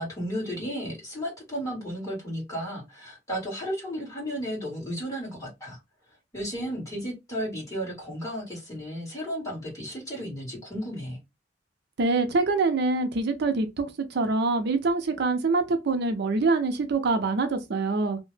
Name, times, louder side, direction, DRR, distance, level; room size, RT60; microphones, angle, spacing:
voice 1, 0.0-5.8 6.3-11.2, equal, 15° left, 1.6 m, -34 dB
voice 2, 12.0-13.9 14.1-18.2, right 3 dB, 60° right, 0.5 m, -25 dB
2.7 x 2.1 x 3.2 m
head